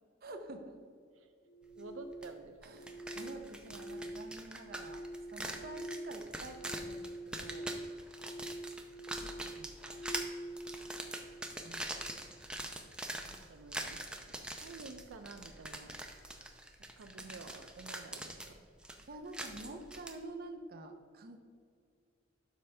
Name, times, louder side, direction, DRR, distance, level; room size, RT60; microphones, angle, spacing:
voice 1, 0.2-0.8 2.6-5.0 5.3-7.7 9.2-10.0 11.6-12.1 13.2-13.3 14.2-14.3 17.2-17.3 19.1-21.4, right 2 dB, 50° right, 6 dB, 0.7 m, -49 dB
sound 1, 1.4-12.5, right 1 dB, 55° left, 0.4 m, -46 dB
voice 2, 1.8-2.8 10.2-11.0 13.2-14.0 14.3-16.0 17.0-18.6, right 3 dB, 85° right, 7 dB, 0.5 m, -51 dB
sound 2, 2.2-2.3 2.6-20.1, right 1 dB, 5° right, 0.6 m, -44 dB
12.0 x 5.1 x 3.4 m, 2.3 s
head